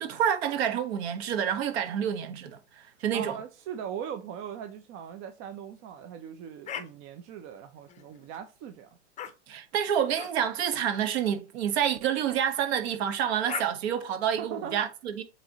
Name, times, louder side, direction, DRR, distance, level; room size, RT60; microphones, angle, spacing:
voice 1, 0.0-3.4 9.5-15.2, right 9 dB, 55° right, 1.5 m, -28 dB
voice 2, 3.1-8.9 14.4-14.8, right 8 dB, 35° right, 0.8 m, -39 dB
sound 1, 6.7-6.9 7.8-8.4 9.2-9.3 10.2-10.3 11.2-11.4 12.9-13.0 13.4-13.7, left 9 dB, 20° left, 0.7 m, -38 dB
7.7 x 3.2 x 4.0 m
hypercardioid pair, 110°, 38 cm